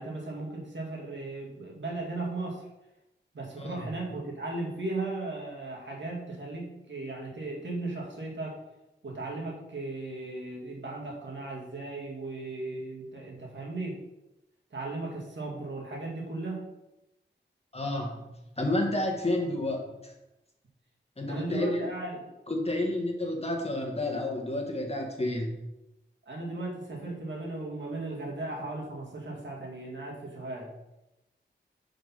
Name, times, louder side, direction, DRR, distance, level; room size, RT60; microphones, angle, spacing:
voice 1, 0.0-2.6 3.3-8.6 9.0-14.0 14.7-16.7 21.3-22.3 26.3-30.7, right 2 dB, 75° right, -3 dB, 2.1 m, -36 dB
voice 2, 3.6-3.9 17.7-18.3 18.6-20.1 21.2-21.8 22.5-25.5, left 1 dB, 30° left, 1 dB, 1.7 m, -30 dB
6.0 x 5.1 x 5.6 m, 0.94 s
wide cardioid pair, 80°, 19 cm